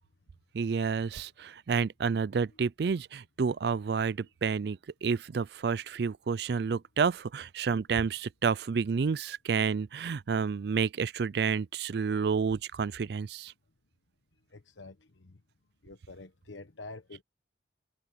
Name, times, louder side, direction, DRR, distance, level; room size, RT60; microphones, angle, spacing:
voice 1, 0.5-13.5, right 5 dB, 60° right, 0.4 m, -30 dB
voice 2, 14.5-15.4 15.8-17.2, left 3 dB, 90° left, 1.2 m, -47 dB
head